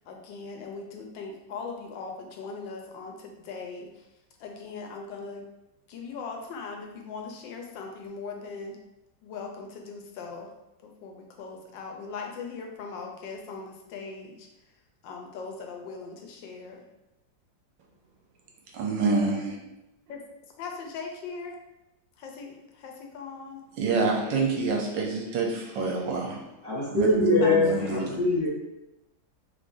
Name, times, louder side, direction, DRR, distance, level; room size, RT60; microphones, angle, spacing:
voice 1, 0.0-4.0 4.4-5.5 5.9-8.8 9.2-10.5 10.8-14.5 15.0-16.8 20.1-20.2 20.6-21.6 22.2-23.6 27.4-27.9, left 4 dB, 80° left, 2 dB, 1.3 m, -39 dB
voice 2, 18.7-19.6 23.8-26.4 26.9-28.2, right 3 dB, 80° right, 0 dB, 1.3 m, -27 dB
voice 3, 26.6-28.5, left 2 dB, 35° left, -7 dB, 1.5 m, -23 dB
3.7 x 3.2 x 2.5 m, 0.93 s
omnidirectional pair, 2.0 m